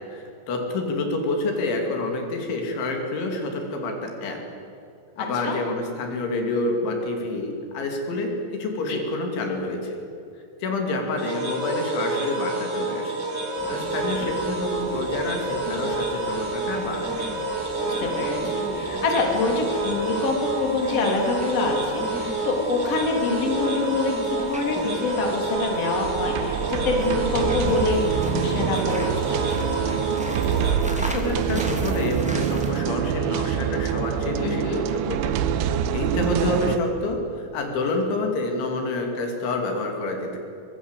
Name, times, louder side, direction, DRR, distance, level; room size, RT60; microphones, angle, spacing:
voice 1, 0.1-4.4 5.2-10.0 10.6-13.2 13.6-17.1 30.6-40.4, left 2 dB, 75° left, 3 dB, 5.0 m, -28 dB
voice 2, 5.2-5.6 8.9-9.0 15.7-15.8 17.8-29.1 34.4-34.8, left 3 dB, 35° left, 1 dB, 3.9 m, -26 dB
sound 1, 11.2-30.8, right 2 dB, 30° right, 1.1 m, -29 dB
sound 2, 13.6-32.7, equal, 5° right, 1.0 m, -38 dB
sound 3, 26.0-36.8, right 9 dB, 90° right, 3.4 m, -26 dB
24.0 x 21.5 x 8.2 m, 2.7 s
omnidirectional pair, 5.4 m